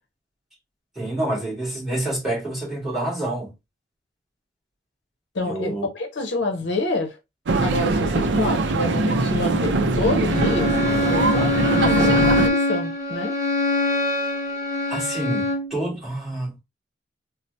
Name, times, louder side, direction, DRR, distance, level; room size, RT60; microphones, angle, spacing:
voice 1, 1.0-3.5 5.4-5.9 14.9-16.6, right 1 dB, ahead, 1.9 m, -28 dB
voice 2, 5.3-7.2 7.6-10.7 11.1-13.4, left 2 dB, 70° left, 0.7 m, -27 dB
sound 1, 7.5-12.5, right 3 dB, 70° right, 0.4 m, -22 dB
Bowed string instrument, 10.3-15.7, left 2 dB, 20° right, 1.1 m, -23 dB
4.3 x 2.0 x 2.7 m
head